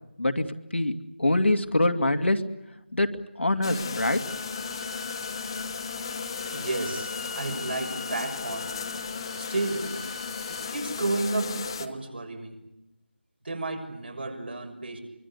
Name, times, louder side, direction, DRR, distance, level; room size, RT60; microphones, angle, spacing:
voice 1, 1.2-2.4 2.9-3.1 3.4-4.5, left 1 dB, 85° left, 6 dB, 2.5 m, -24 dB
sound 1, 3.6-11.9, left 5 dB, 25° left, 1.4 m, -35 dB
Bowed string instrument, 4.0-10.7, left 1 dB, 70° left, 2.4 m, -43 dB
voice 2, 6.5-8.7 9.4-10.0 10.5-12.6 13.4-15.0, right 2 dB, 60° right, 4 dB, 6.4 m, -32 dB
24.5 x 24.5 x 8.4 m, 0.92 s
figure-of-eight pair, 165°, 6 cm